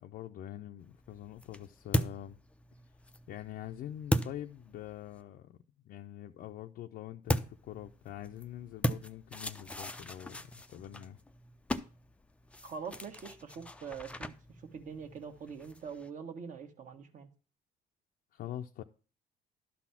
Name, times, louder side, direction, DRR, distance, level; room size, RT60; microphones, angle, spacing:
voice 1, 0.0-2.4 3.3-5.6 5.8-11.2 18.3-18.8, left 12 dB, 65° left, 0.5 m, -44 dB
sound 1, 0.8-5.2 7.3-16.1, left 1 dB, 5° left, 0.4 m, -38 dB
voice 2, 12.6-17.3, right 6 dB, 50° right, 1.3 m, -44 dB
11.5 x 4.2 x 5.7 m
cardioid pair, 110°, 17 cm